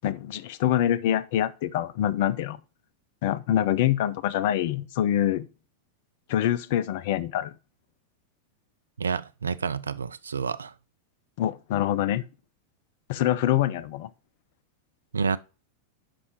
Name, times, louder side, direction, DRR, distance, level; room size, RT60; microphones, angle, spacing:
voice 1, 0.0-2.6 3.2-5.5 6.3-7.5 11.4-12.2 13.1-14.1, left 11 dB, 50° left, 0.5 m, -25 dB
voice 2, 9.0-10.7 15.1-15.4, right 5 dB, 75° right, 0.4 m, -29 dB
11.5 x 5.5 x 3.1 m
figure-of-eight pair, 90°, 0 cm